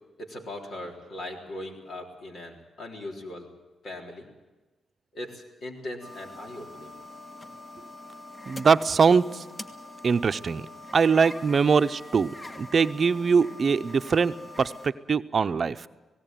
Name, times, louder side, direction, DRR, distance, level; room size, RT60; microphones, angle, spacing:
voice 1, 0.2-3.5 3.8-4.3 5.1-6.9, left 1 dB, 70° left, 1 dB, 3.7 m, -39 dB
sound 1, 6.0-14.9, left 2 dB, 30° left, 1.5 m, -44 dB
voice 2, 8.5-9.4 10.0-10.7 10.9-12.3 12.6-15.9, right 5 dB, 55° right, 12 dB, 0.7 m, -22 dB
18.0 x 17.5 x 9.1 m, 1.2 s
supercardioid pair, 55°, 0 cm